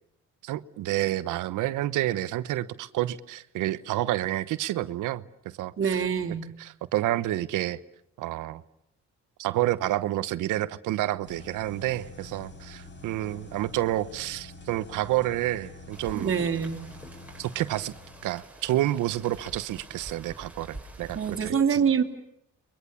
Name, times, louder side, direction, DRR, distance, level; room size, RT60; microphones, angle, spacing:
voice 1, 0.4-5.2 5.6-6.0 6.6-7.8 8.2-8.6 9.4-16.3 17.4-17.9 18.2-21.8, right 15 dB, 90° right, 14 dB, 1.0 m, -29 dB
voice 2, 5.8-6.4 16.1-16.8 21.1-22.0, right 7 dB, 45° right, 5 dB, 2.9 m, -25 dB
sound 1, 11.2-18.4, left 2 dB, 40° left, 4.2 m, -47 dB
Rain, 15.9-21.5, right 1 dB, 5° right, 5.2 m, -46 dB
29.5 x 23.0 x 7.0 m, 0.76 s
cardioid pair, 90°, 30 cm